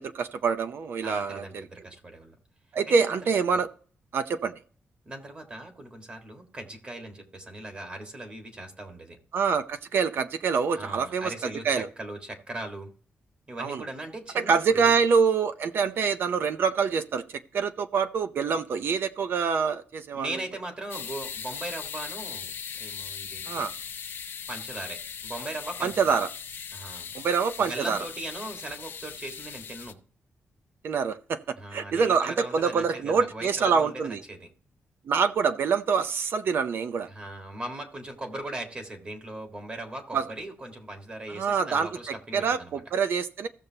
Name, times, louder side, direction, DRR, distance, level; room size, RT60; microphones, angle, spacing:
voice 1, 0.0-1.4 2.7-3.7 4.1-4.5 9.3-11.9 13.6-13.8 14.3-17.2 17.5-20.3 23.5-23.7 25.8-26.3 27.1-28.0 30.8-34.2 35.1-37.1 40.1-40.3 41.3-43.5, right 5 dB, 60° right, 10 dB, 0.7 m, -26 dB
voice 2, 1.0-2.4 2.9-3.2 3.5-3.6 5.1-9.2 10.7-12.9 13.5-15.0 20.1-23.7 24.5-26.2 26.7-27.1 27.6-30.0 31.5-34.5 37.1-42.8, right 1 dB, 25° right, 4 dB, 1.8 m, -39 dB
sound 1, 20.9-29.9, left 7 dB, 55° left, 0.8 m, -39 dB
15.5 x 6.8 x 2.9 m, 0.42 s
wide cardioid pair, 170°, 4 cm